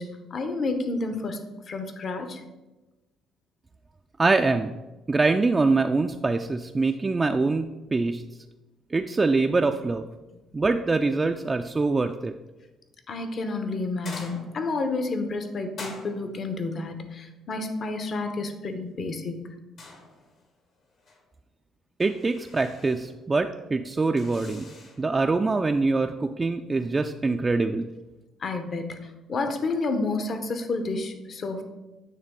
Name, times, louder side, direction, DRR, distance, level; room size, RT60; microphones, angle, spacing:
voice 1, 0.0-1.4 1.7-2.4 13.1-19.5 28.4-31.6, left 3 dB, 50° left, 7 dB, 0.8 m, -30 dB
voice 2, 4.2-4.7 5.1-8.2 8.9-10.1 10.5-12.3 22.0-24.7 25.0-27.9, right 3 dB, 25° right, 5 dB, 0.3 m, -24 dB
sound 1, 14.0-14.8 15.8-16.5 19.8-20.5 20.8-21.2 22.0-23.1 24.2-25.1, left 3 dB, 65° left, 1.5 m, -44 dB
8.8 x 3.2 x 3.7 m, 1.1 s
supercardioid pair, 65°, 0 cm